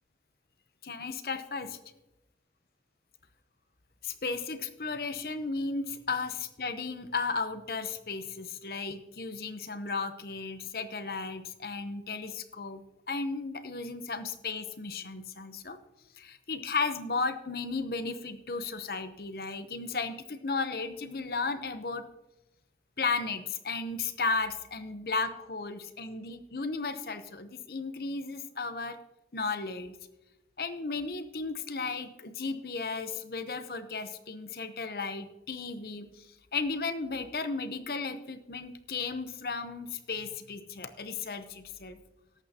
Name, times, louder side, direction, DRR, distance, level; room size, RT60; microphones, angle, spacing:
voice 1, 0.8-1.8 4.0-15.8 16.2-22.1 23.0-29.0 29.3-30.0 30.6-36.3 36.5-42.0, left 4 dB, 55° left, 10 dB, 0.8 m, -34 dB
18.0 x 8.2 x 2.9 m, 0.99 s
head